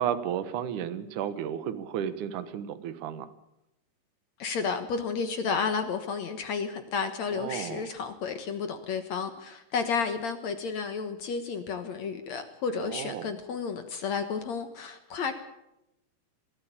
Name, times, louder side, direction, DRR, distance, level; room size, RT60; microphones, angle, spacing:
voice 1, 0.0-3.3 7.3-7.9 12.8-13.3, right 9 dB, 60° right, 12 dB, 2.5 m, -33 dB
voice 2, 4.4-15.3, left 5 dB, 60° left, 8 dB, 2.1 m, -32 dB
22.5 x 14.0 x 8.8 m, 0.86 s
omnidirectional pair, 4.5 m